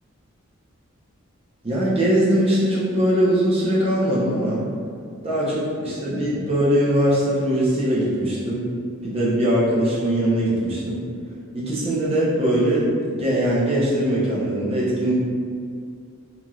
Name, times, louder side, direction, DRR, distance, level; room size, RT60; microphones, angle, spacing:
voice 1, 1.6-4.6 5.2-8.6 9.0-11.0 11.5-15.2, right 1 dB, 25° right, -8 dB, 0.6 m, -21 dB
3.0 x 2.6 x 2.3 m, 2.2 s
head